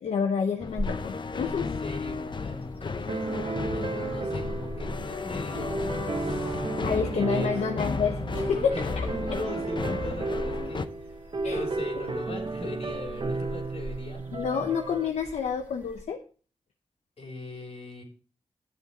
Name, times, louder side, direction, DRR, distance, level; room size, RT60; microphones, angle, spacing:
voice 1, 0.0-1.7 6.8-9.1 11.4-11.6 14.3-16.2, left 6 dB, 90° left, 5 dB, 0.7 m, -29 dB
sound 1, 0.6-10.9, left 4 dB, 45° left, 0.6 m, -34 dB
sound 2, 0.6-16.0, equal, 15° right, 2.1 m, -43 dB
voice 2, 1.4-7.8 8.7-8.8 9.1-14.4 17.2-18.0, left 2 dB, 65° left, 1 dB, 3.4 m, -41 dB
sound 3, 3.1-15.1, right 3 dB, 50° right, 1.0 m, -33 dB
10.5 x 7.1 x 4.1 m, 0.39 s
cardioid pair, 60°, 11 cm